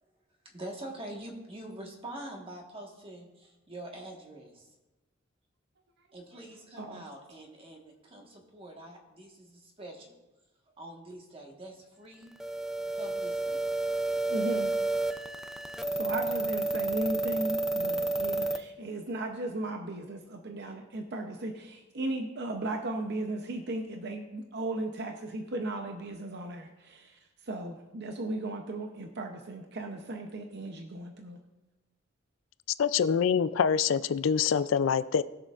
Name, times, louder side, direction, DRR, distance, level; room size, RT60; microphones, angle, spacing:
voice 1, 0.4-4.7 6.1-10.2 10.7-12.3 12.9-13.7, right 1 dB, 30° right, 1.4 m, -45 dB
sound 1, 12.4-18.6, right 2 dB, ahead, 0.4 m, -30 dB
voice 2, 14.3-14.7 15.9-27.2 27.5-31.4, right 2 dB, 55° right, 0.7 m, -36 dB
voice 3, 32.8-35.2, left 7 dB, 75° left, 0.4 m, -25 dB
19.5 x 6.6 x 2.5 m
head